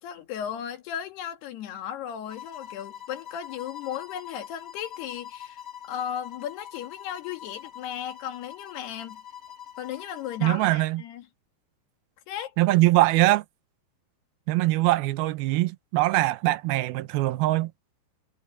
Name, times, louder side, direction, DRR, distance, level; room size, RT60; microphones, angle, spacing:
voice 1, 0.0-5.6 5.9-9.2 9.8-11.3 12.3-12.5, left 9 dB, 85° left, 4.1 m, -36 dB
sound 1, 2.3-10.7, left 9 dB, 20° left, 3.4 m, -44 dB
voice 2, 10.4-11.0 12.6-13.4 14.5-17.7, right 18 dB, 80° right, 2.5 m, -22 dB
omnidirectional pair, 4.6 m